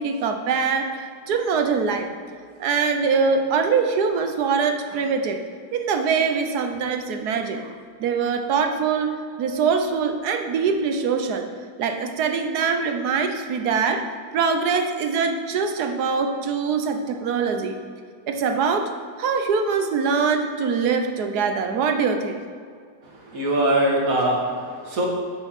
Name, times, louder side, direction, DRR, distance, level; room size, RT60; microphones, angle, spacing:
voice 1, 0.0-2.1 2.6-5.4 5.7-7.7 8.0-11.5 11.8-14.0 14.3-17.8 18.3-18.9 19.2-22.4, right 5 dB, 70° right, 6 dB, 1.3 m, -23 dB
voice 2, 23.0-25.1, right 1 dB, 55° right, -2 dB, 2.1 m, -22 dB
7.8 x 7.1 x 5.8 m, 2.1 s
omnidirectional pair, 1.8 m